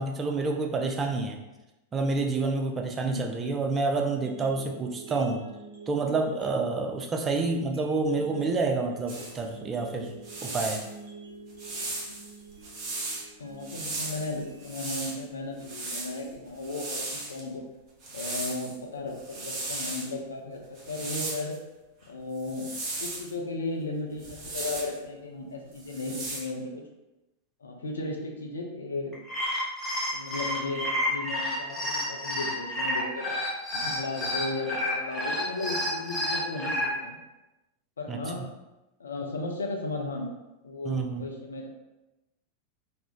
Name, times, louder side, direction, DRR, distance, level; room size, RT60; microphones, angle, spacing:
voice 1, 0.0-1.4 1.9-5.4 5.9-10.8 38.1-38.5 40.9-41.3, right 3 dB, 20° right, 2 dB, 0.3 m, -28 dB
voice 2, 2.9-3.3 13.4-17.6 18.1-20.6 20.9-21.6 22.1-22.7 23.0-26.8 27.6-29.1 30.1-33.4 33.7-37.2 38.0-38.4 39.0-40.3 40.6-41.7, left 2 dB, 70° left, 1 dB, 0.4 m, -35 dB
sound 1, 4.1-16.1, right 3 dB, 75° right, 0.5 m, -48 dB
sound 2, 9.1-9.4 10.1-10.9 11.6-13.2 13.6-15.2 15.6-17.4 18.0-18.8 19.1-20.1 20.8-21.6 22.4-23.3 24.2-25.0 25.8-26.4, right 2 dB, 40° right, 0.7 m, -36 dB
sound 3, 29.1-36.9, left 1 dB, 15° left, 0.7 m, -30 dB
2.3 x 2.0 x 2.9 m, 1.0 s
figure-of-eight pair, 90°, 0 cm